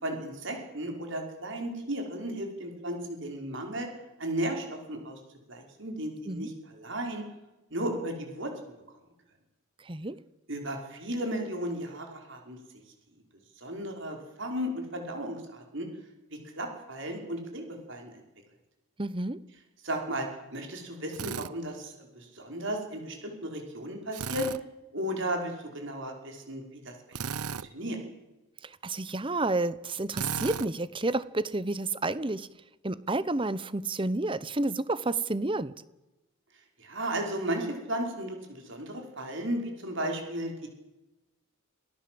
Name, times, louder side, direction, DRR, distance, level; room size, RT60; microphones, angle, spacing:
voice 1, 0.0-3.9 4.2-5.2 5.5-7.2 7.7-8.7 10.5-12.6 13.6-15.9 16.6-18.2 19.8-24.5 24.9-27.2 27.7-28.0 36.8-40.7, right 1 dB, 55° right, 3 dB, 5.4 m, -35 dB
voice 2, 9.8-10.2 19.0-19.4 28.6-32.5 32.8-35.7, right 2 dB, 25° right, 17 dB, 0.8 m, -30 dB
Drill, 21.1-21.5 24.1-24.6 27.1-27.7 30.1-30.7, right 6 dB, 90° right, 0.8 m, -35 dB
27.0 x 18.0 x 7.9 m, 1.0 s
head